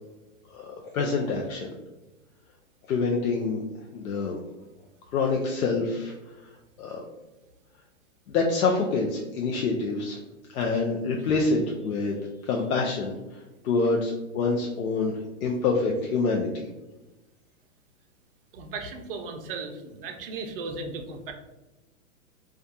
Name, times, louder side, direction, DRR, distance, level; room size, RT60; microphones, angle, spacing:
voice 1, 0.5-1.7 2.9-3.6 3.9-4.4 5.1-6.1 6.8-7.0 8.3-10.2 10.5-12.1 12.4-16.7, left 4 dB, 80° left, 0 dB, 0.5 m, -26 dB
voice 2, 13.5-13.9 18.5-21.3, right 4 dB, 45° right, 5 dB, 0.4 m, -37 dB
2.3 x 2.2 x 2.6 m, 1.1 s
hypercardioid pair, 135°, 42 cm